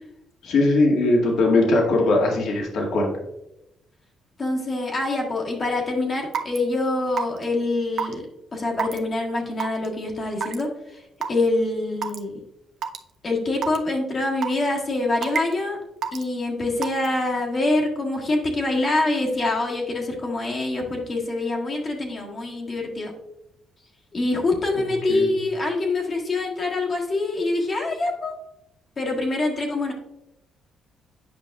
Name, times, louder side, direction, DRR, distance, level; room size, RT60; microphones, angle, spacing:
voice 1, 0.4-3.1 24.7-25.3, left 2 dB, 75° left, -1 dB, 1.7 m, -20 dB
voice 2, 4.4-8.2 8.5-10.7 11.3-12.4 13.2-15.8 16.1-23.1 24.1-28.3 29.0-29.9, left 2 dB, 40° left, -1 dB, 1.5 m, -25 dB
Raindrop / Water tap faucet / Drip, 6.3-6.6 7.2-7.4 8.0-8.1 8.8-9.0 9.6-9.9 10.4-10.6 11.2-11.3 12.0-12.2 12.8-13.0 13.6-13.8 14.4-14.7 15.2-15.5 16.0-16.2 16.8-17.1, right 7 dB, 65° right, 0.6 m, -27 dB
8.8 x 5.3 x 2.3 m, 0.85 s
cardioid pair, 90°, 0 cm